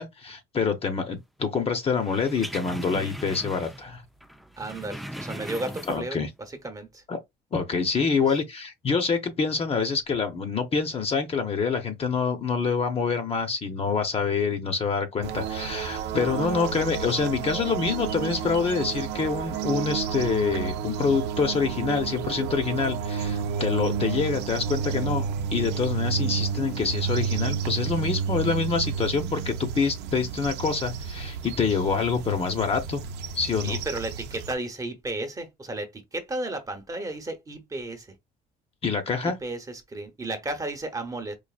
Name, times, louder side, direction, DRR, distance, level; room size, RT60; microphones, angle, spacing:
voice 1, 0.0-4.0 5.9-6.3 7.1-7.2 7.5-25.2 25.5-33.0 33.3-33.8 38.8-39.4, left 5 dB, 35° left, 0.8 m, -26 dB
sound 1, 2.0-3.9 4.2-6.2 6.6-6.7, equal, ahead, 0.3 m, -39 dB
voice 2, 4.6-6.2 6.5-7.0 33.6-38.1 39.4-41.4, right 2 dB, 20° right, 0.9 m, -33 dB
sound 2, 15.2-34.5, right 7 dB, 85° right, 0.6 m, -31 dB
4.8 x 2.5 x 2.4 m
cardioid pair, 110°, 17 cm